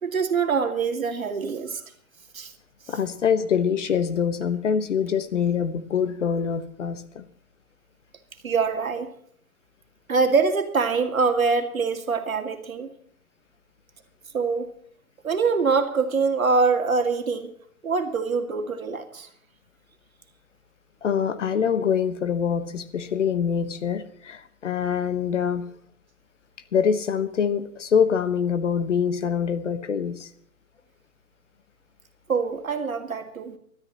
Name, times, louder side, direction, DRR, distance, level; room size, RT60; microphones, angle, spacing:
voice 1, 0.0-1.8 2.3-2.5 8.4-9.1 10.1-12.9 14.3-14.7 15.2-17.5 17.8-19.3 32.3-33.6, right 5 dB, 70° right, 5 dB, 2.4 m, -24 dB
voice 2, 2.9-7.3 21.0-25.6 26.7-30.3, left 7 dB, 55° left, 12 dB, 1.3 m, -24 dB
25.0 x 13.0 x 3.0 m, 0.64 s
figure-of-eight pair, 135°, 43 cm